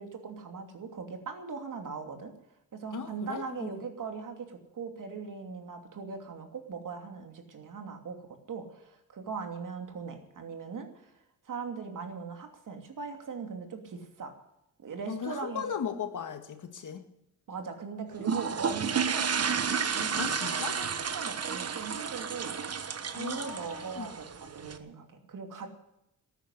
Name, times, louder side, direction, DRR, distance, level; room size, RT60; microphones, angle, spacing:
voice 1, 0.0-2.3 2.7-11.1 11.4-14.4 14.8-15.6 17.5-19.3 19.9-22.6 23.1-25.7, right 5 dB, 60° right, 5 dB, 2.8 m, -40 dB
voice 2, 2.9-3.7 15.1-17.0 20.2-20.8 23.1-24.1, left 7 dB, 60° left, 7 dB, 1.8 m, -37 dB
sound 1, 18.2-24.8, right 6 dB, 45° right, 1.2 m, -32 dB
13.5 x 9.2 x 9.8 m, 0.83 s
cardioid pair, 85°, 35 cm